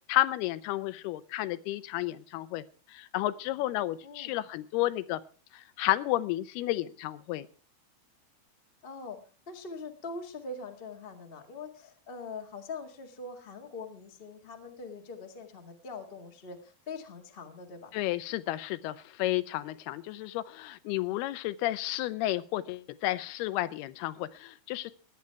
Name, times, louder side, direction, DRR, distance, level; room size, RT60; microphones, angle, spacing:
voice 1, 0.1-2.6 2.9-5.2 5.5-7.5 17.9-24.9, left 15 dB, 85° left, 14 dB, 2.7 m, -31 dB
voice 2, 8.8-9.2 9.5-17.9, left 3 dB, 45° left, 4 dB, 0.7 m, -43 dB
16.5 x 11.0 x 4.6 m, 0.37 s
omnidirectional pair, 4.4 m